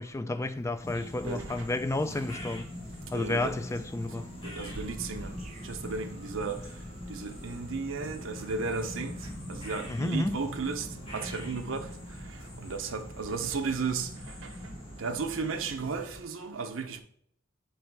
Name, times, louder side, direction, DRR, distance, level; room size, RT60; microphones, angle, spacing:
voice 1, 0.0-2.6 3.1-4.3 9.9-10.4, left 2 dB, 15° left, 0.3 m, -31 dB
sound 1, 0.6-13.6, right 2 dB, 35° right, 0.7 m, -55 dB
sound 2, 0.8-16.2, left 1 dB, 30° left, 2.0 m, -42 dB
voice 2, 3.1-3.6 4.4-5.3 5.7-6.6 7.1-9.1 9.6-10.9 11.1-11.9 12.6-14.1 15.0-17.0, right 4 dB, 75° right, 0.7 m, -34 dB
7.4 x 3.2 x 4.6 m
head